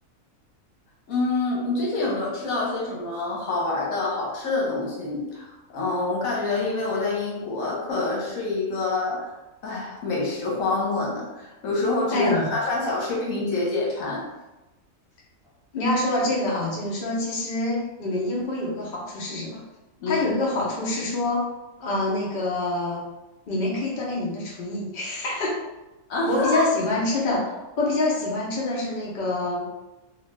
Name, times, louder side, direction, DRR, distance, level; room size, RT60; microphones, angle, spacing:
voice 1, 1.1-9.3 9.6-14.3 20.0-20.2 26.1-26.7, left 3 dB, 75° left, -4 dB, 1.3 m, -26 dB
voice 2, 12.1-12.5 15.7-19.6 20.1-21.5 21.8-23.0 23.5-25.6 26.3-29.7, left 2 dB, 45° left, -4 dB, 0.8 m, -26 dB
2.8 x 2.4 x 3.1 m, 1.0 s
omnidirectional pair, 1.4 m